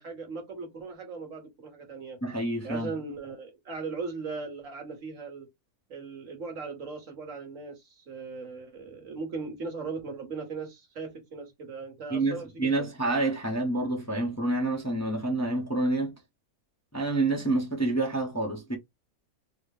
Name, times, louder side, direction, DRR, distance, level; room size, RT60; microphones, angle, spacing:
voice 1, 0.0-2.2 2.6-5.5 5.9-12.9, right 4 dB, 60° right, 1.5 m, -38 dB
voice 2, 2.2-2.9 12.1-16.1 16.9-18.8, right 2 dB, 15° left, 0.6 m, -28 dB
4.0 x 2.1 x 3.3 m
omnidirectional pair, 1.6 m